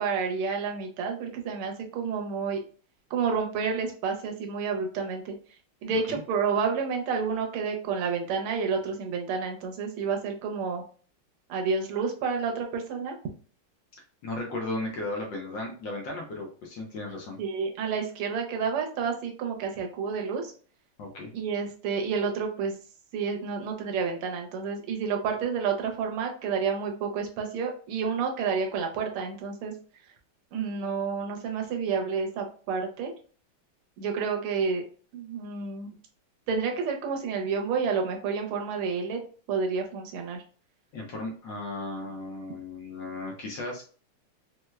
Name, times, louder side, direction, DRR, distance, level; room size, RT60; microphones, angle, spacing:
voice 1, 0.0-2.6 3.1-5.3 5.8-10.8 11.5-13.2 17.4-20.5 21.3-22.7 23.1-29.7 30.5-33.1 34.0-34.8 35.1-35.9 36.5-39.2 39.5-40.4, right 5 dB, 85° right, 2 dB, 1.6 m, -29 dB
voice 2, 14.2-17.4 21.0-21.3 40.9-43.8, left 2 dB, 70° left, 0 dB, 1.3 m, -35 dB
4.4 x 2.1 x 2.3 m, 0.41 s
omnidirectional pair, 2.4 m